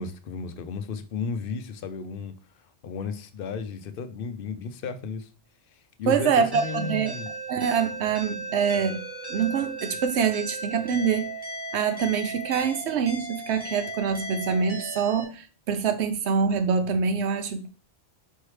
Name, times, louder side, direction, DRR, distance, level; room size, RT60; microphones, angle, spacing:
voice 1, 0.0-2.4 2.8-5.3 6.0-7.3, left 5 dB, 60° left, 9 dB, 0.6 m, -34 dB
voice 2, 6.1-7.1 7.5-9.0 9.3-11.3 11.7-17.7, right 6 dB, 70° right, 8 dB, 0.9 m, -25 dB
sound 1, 6.5-15.2, right 2 dB, 20° right, 0.9 m, -36 dB
4.5 x 3.2 x 3.1 m, 0.36 s
omnidirectional pair, 1.2 m